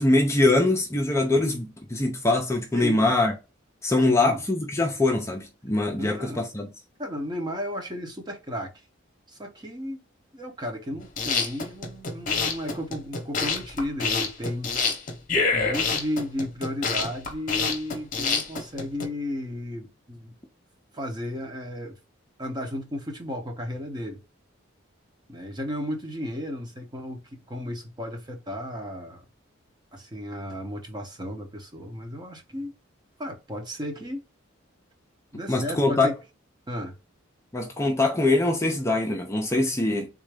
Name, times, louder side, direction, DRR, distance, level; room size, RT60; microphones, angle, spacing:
voice 1, 0.0-3.3 3.8-6.7 35.5-36.1 37.5-40.1, left 2 dB, 15° left, 0.5 m, -23 dB
voice 2, 2.7-3.1 4.1-4.4 6.0-6.5 7.0-8.7 9.3-10.0 10.3-14.8 15.5-20.3 20.9-22.0 22.4-24.2 25.3-27.2 27.5-29.2 29.9-32.7 33.2-34.2 35.3-36.2 36.7-37.0, equal, 20° right, 0.8 m, -34 dB
sound 1, 11.0-19.1, left 4 dB, 40° left, 0.9 m, -27 dB
3.6 x 2.5 x 3.3 m
head